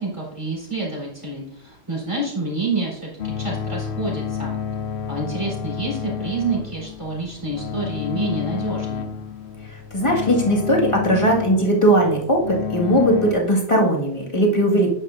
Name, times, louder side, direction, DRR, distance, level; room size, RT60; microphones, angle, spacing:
voice 1, 0.0-4.5 5.1-9.1, right 3 dB, 30° right, -5 dB, 3.9 m, -28 dB
sound 1, 3.2-13.3, left 7 dB, 85° left, 1.0 m, -30 dB
voice 2, 9.9-14.9, right 1 dB, 30° left, -2 dB, 1.9 m, -18 dB
10.5 x 9.8 x 2.6 m, 0.75 s
omnidirectional pair, 1.1 m